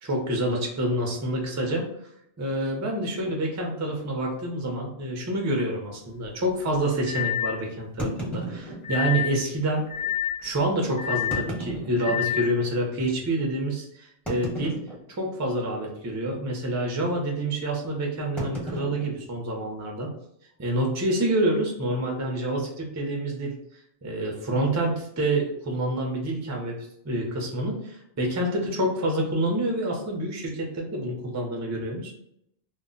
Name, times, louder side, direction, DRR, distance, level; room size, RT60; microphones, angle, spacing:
voice 1, 0.0-1.9 2.4-9.8 10.4-14.8 15.1-20.1 20.6-23.5 24.0-26.8 27.0-32.1, right 1 dB, 30° right, 0 dB, 0.3 m, -27 dB
Inside Pool Table, 3.3-3.4 4.2-4.3 4.6-4.7 5.3-5.4 8.0-9.2 10.0-10.1 11.1-12.6 13.1-13.2 14.3-15.3 15.6-16.0 16.2-16.6 18.4-20.0, right 1 dB, ahead, 0.7 m, -35 dB
sound 1, 5.6-5.7 7.1-7.6 8.8-9.4 9.9-10.4 11.0-11.5 12.0-12.5, left 11 dB, 60° left, 0.4 m, -28 dB
2.2 x 2.1 x 3.7 m, 0.73 s
omnidirectional pair, 1.3 m